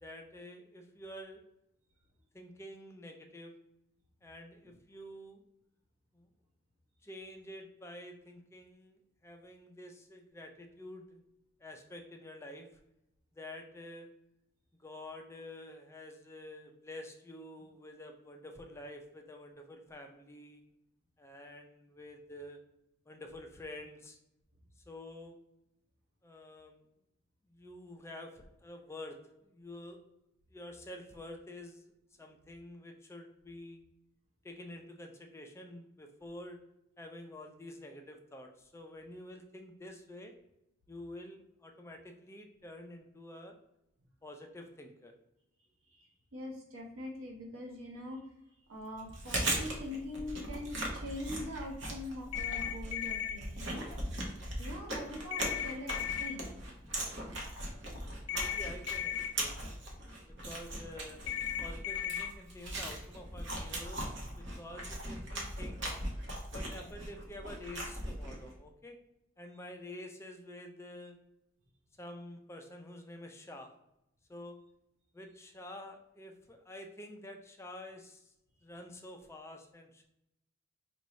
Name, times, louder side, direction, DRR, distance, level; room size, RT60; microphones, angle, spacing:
voice 1, 0.0-1.4 2.3-3.6 4.2-5.4 6.1-6.3 7.0-11.2 11.6-12.8 13.3-14.1 14.8-20.6 21.2-22.6 23.1-24.2 24.9-25.4 26.2-26.8 27.5-30.0 30.5-31.9 32.2-33.8 34.4-36.6 37.0-40.3 40.9-43.6 44.2-45.1 54.9-55.1 57.7-59.6 60.4-61.2 61.6-65.8 66.5-69.0 69.4-71.2 72.0-73.7 74.3-74.6 75.1-78.3 78.6-80.0, left 1 dB, 15° left, 3 dB, 0.4 m, -48 dB
voice 2, 45.9-48.3 48.7-53.9 54.6-56.5, left 1 dB, 85° right, 0 dB, 0.9 m, -43 dB
Chewing mastication, 49.0-68.5, right 1 dB, 60° right, 1.0 m, -39 dB
sound 1, 52.3-53.3 55.3-56.3 58.3-59.3 61.3-62.3, left 10 dB, 75° left, 0.7 m, -35 dB
4.5 x 2.6 x 3.0 m, 0.84 s
head